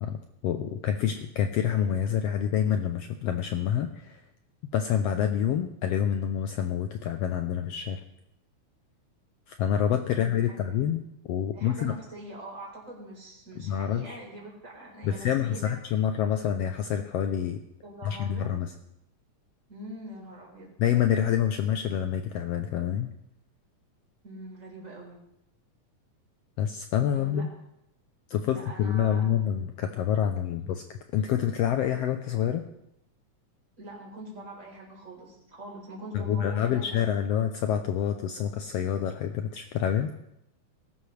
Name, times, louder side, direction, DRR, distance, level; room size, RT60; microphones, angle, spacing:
voice 1, 0.0-4.2 4.7-8.0 9.5-11.0 11.3-12.0 13.6-14.2 15.0-17.6 18.0-18.7 20.8-23.1 26.6-27.5 28.3-30.8 31.1-32.7 36.1-40.1, left 9 dB, 85° left, 7 dB, 1.4 m, -27 dB
voice 2, 10.1-10.6 11.4-15.7 17.8-18.5 19.7-20.8 24.2-25.2 27.1-27.5 28.4-29.2 30.4-30.7 33.8-37.0, right 1 dB, 25° right, -2 dB, 4.2 m, -43 dB
19.5 x 11.5 x 3.2 m, 0.83 s
omnidirectional pair, 3.5 m